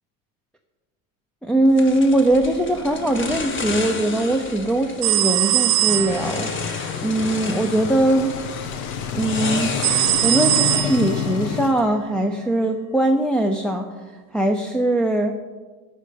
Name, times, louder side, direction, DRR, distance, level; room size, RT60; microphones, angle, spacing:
voice 1, 1.4-8.3 9.1-9.7 10.2-13.9 14.3-15.3, right 1 dB, ahead, 1 dB, 0.6 m, -21 dB
sound 1, 1.8-11.9, left 3 dB, 25° left, 1.5 m, -32 dB
sound 2, 5.0-6.5 9.8-11.3, right 16 dB, 60° right, 0.8 m, -20 dB
sound 3, 5.9-11.7, left 8 dB, 75° left, 1.1 m, -29 dB
11.5 x 5.2 x 8.4 m, 1.3 s
supercardioid pair, 110°, 44 cm